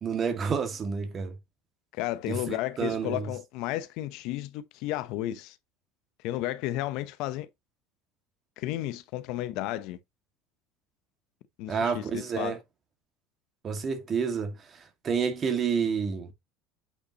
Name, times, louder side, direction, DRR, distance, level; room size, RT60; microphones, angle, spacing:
voice 1, 0.0-1.4 2.3-3.3 11.7-12.6 13.6-16.3, right 6 dB, 25° right, 1.9 m, -29 dB
voice 2, 1.9-5.6 6.2-7.5 8.6-10.0 11.6-12.6, left 15 dB, 65° left, 0.8 m, -33 dB
8.6 x 5.5 x 2.9 m
cardioid pair, 150°, 0 cm